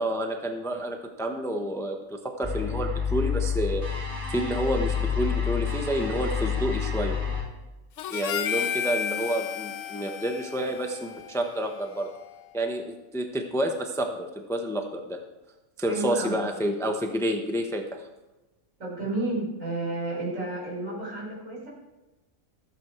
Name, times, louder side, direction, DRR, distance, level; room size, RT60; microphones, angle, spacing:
voice 1, 0.0-3.8 4.3-7.2 8.1-12.1 12.5-15.2 15.8-18.1, right 1 dB, 5° left, 4 dB, 0.8 m, -29 dB
sound 1, 2.4-7.4, left 6 dB, 25° right, 4.3 m, -28 dB
Harmonica, 8.0-12.5, left 7 dB, 70° left, 0.9 m, -33 dB
voice 2, 15.9-16.4 18.8-21.7, right 2 dB, 75° right, -5 dB, 5.1 m, -31 dB
14.5 x 7.7 x 4.7 m, 1.0 s
omnidirectional pair, 1.4 m